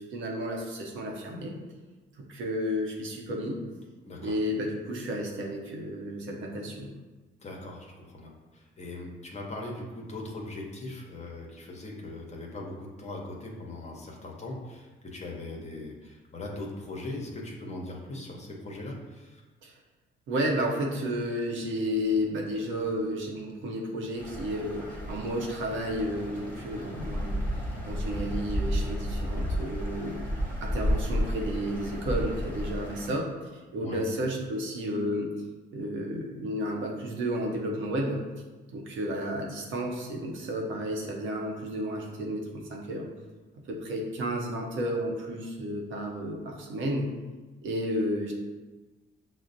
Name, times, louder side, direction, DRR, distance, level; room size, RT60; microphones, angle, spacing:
voice 1, 0.0-1.5 2.2-3.6 4.2-6.9 19.6-19.7 20.3-30.2 30.6-33.3 33.7-35.3 35.7-38.2 38.7-43.1 43.7-47.1 47.6-48.3, equal, 75° right, 0 dB, 0.7 m, -32 dB
voice 2, 4.0-4.4 7.4-19.4 33.8-34.0, left 2 dB, 35° left, -1 dB, 0.7 m, -40 dB
sound 1, 24.2-33.1, equal, 10° left, 0.9 m, -32 dB
5.9 x 2.0 x 2.6 m, 1.2 s
cardioid pair, 90°, 20 cm